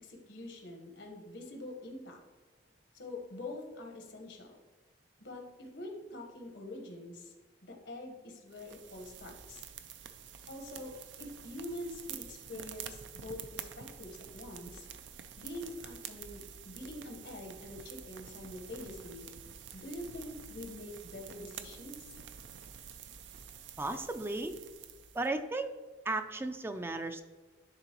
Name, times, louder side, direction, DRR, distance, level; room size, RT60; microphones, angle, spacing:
voice 1, 0.0-2.2 2.9-4.5 5.2-7.3 7.6-9.6 10.5-14.9 15.4-19.3 19.7-22.1, left 1 dB, 80° left, 3 dB, 1.2 m, -45 dB
sound 1, 8.5-25.3, right 8 dB, 90° right, 0.5 m, -48 dB
voice 2, 23.8-24.5 25.1-25.7 26.0-27.2, right 2 dB, 15° right, 8 dB, 0.3 m, -35 dB
10.5 x 3.7 x 3.0 m, 1.3 s
head